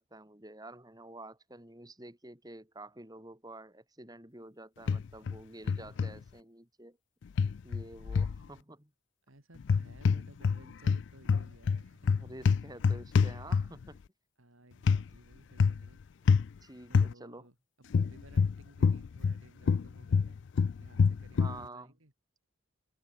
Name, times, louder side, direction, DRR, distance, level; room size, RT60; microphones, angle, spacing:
voice 1, 0.0-7.0 7.6-8.9 12.1-14.0 16.6-17.5 21.4-21.9, right 2 dB, 20° right, 2.9 m, -49 dB
sound 1, 4.9-5.4 5.7-6.1 7.4-8.4 9.6-10.6 10.9-13.9 14.9-15.0 15.6-15.9 16.3-16.5 16.9-17.1 17.9-19.4 19.7-21.6, left 5 dB, 55° left, 0.4 m, -26 dB
voice 2, 9.3-12.2 14.4-16.0 16.9-22.1, right 1 dB, 75° right, 3.8 m, -58 dB
head